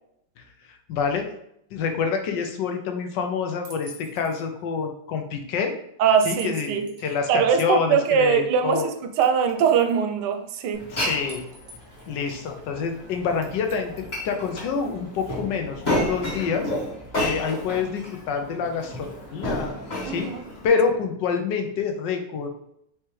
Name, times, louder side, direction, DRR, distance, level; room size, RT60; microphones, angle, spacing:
voice 1, 0.4-1.3 1.7-5.7 6.2-8.8 10.9-11.4 12.1-16.7 17.2-19.7 20.0-20.3 20.6-22.5, left 5 dB, 75° left, 1.3 m, -27 dB
sound 1, 3.6-4.4 6.4-7.2 7.8-7.9 9.2-10.0 11.3-12.2 13.4-14.5, right 1 dB, 50° right, 0.9 m, -47 dB
voice 2, 6.0-6.9 7.3-8.9 9.2-10.9 20.0-20.4, right 7 dB, 75° right, 1.1 m, -21 dB
Glass, 10.7-20.7, left 1 dB, 25° left, 1.5 m, -32 dB
4.7 x 3.3 x 3.1 m
omnidirectional pair, 2.0 m